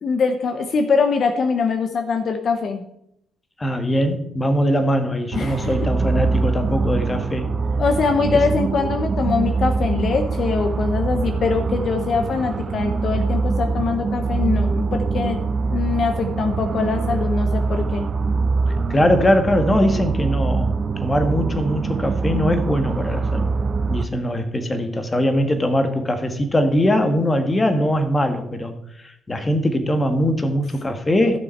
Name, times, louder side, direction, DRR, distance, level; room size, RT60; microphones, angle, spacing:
voice 1, 0.0-2.8 5.3-5.9 7.8-15.4 15.7-18.1, left 5 dB, 55° left, 7 dB, 1.1 m, -23 dB
voice 2, 3.6-7.5 18.9-20.7 21.0-23.5 23.9-28.7 29.3-31.4, equal, 20° left, 7 dB, 1.6 m, -21 dB
sound 1, 5.3-24.1, right 4 dB, 40° right, 0.7 m, -23 dB
14.5 x 6.5 x 4.5 m, 0.75 s
cardioid pair, 90°, 0 cm